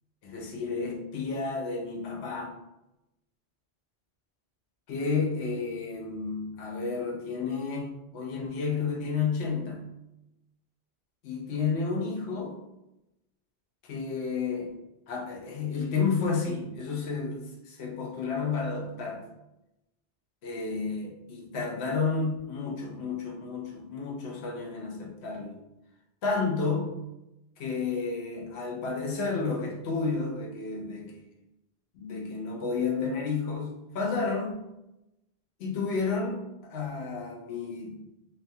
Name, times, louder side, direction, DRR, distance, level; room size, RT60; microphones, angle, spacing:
voice 1, 0.2-2.5 4.9-9.8 11.2-12.6 13.8-14.7 15.1-19.2 20.4-25.6 26.2-27.0 27.6-31.1 31.9-34.5 35.6-38.0, left 4 dB, 75° left, 0 dB, 0.9 m, -31 dB
2.7 x 2.4 x 2.6 m, 0.92 s
omnidirectional pair, 1.1 m